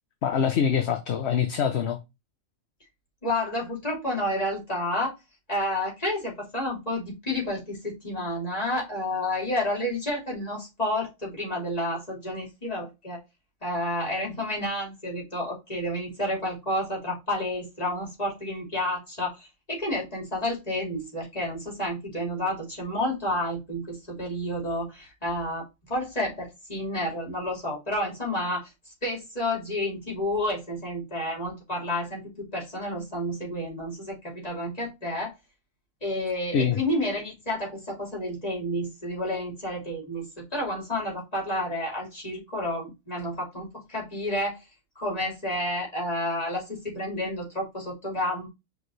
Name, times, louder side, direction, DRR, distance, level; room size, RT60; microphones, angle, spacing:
voice 1, 0.2-2.0 36.5-36.8, left 7 dB, 60° left, 1.0 m, -24 dB
voice 2, 3.2-5.1 5.5-13.2 13.6-28.7 29.0-35.3 36.0-44.6 44.9-48.5, left 1 dB, 30° left, 3.3 m, -30 dB
6.1 x 4.9 x 3.2 m
omnidirectional pair, 1.4 m